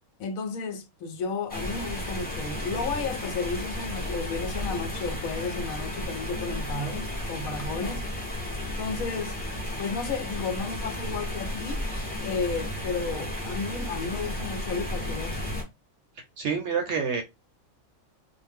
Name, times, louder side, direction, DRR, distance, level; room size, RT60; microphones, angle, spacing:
voice 1, 0.2-8.1 8.8-9.3 9.8-11.8 12.2-15.4, left 4 dB, 75° left, 1.0 m, -33 dB
sound 1, 1.5-15.6, left 1 dB, 10° left, 0.8 m, -33 dB
voice 2, 16.4-17.2, right 6 dB, 65° right, 0.7 m, -27 dB
2.5 x 2.0 x 3.4 m
omnidirectional pair, 1.5 m